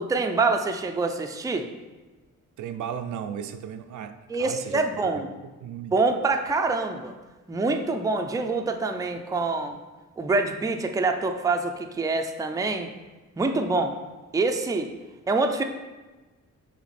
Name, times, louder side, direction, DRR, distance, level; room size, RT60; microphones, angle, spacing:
voice 1, 0.0-1.7 4.3-5.3 5.9-7.2 7.5-9.8 10.2-12.9 13.4-13.9 14.3-14.9 15.3-15.6, right 3 dB, 10° right, 5 dB, 0.4 m, -25 dB
voice 2, 2.6-4.8 5.1-5.2 5.6-6.0, right 8 dB, 75° right, 8 dB, 0.5 m, -35 dB
5.9 x 4.1 x 4.2 m, 1.2 s
cardioid pair, 115°, 30 cm